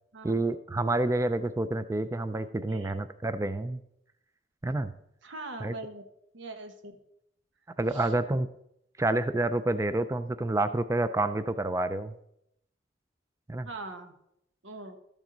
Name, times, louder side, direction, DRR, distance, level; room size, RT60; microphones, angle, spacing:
voice 1, 0.2-3.8 4.6-4.9 5.6-5.7 7.8-8.5 9.0-12.1 13.5-13.7, right 2 dB, 15° right, 12 dB, 0.4 m, -28 dB
voice 2, 2.6-2.9 5.2-6.0 6.3-6.9 7.9-8.1 13.6-14.1 14.6-15.0, right 2 dB, 85° right, 6 dB, 1.3 m, -42 dB
13.0 x 7.2 x 3.9 m, 0.76 s
head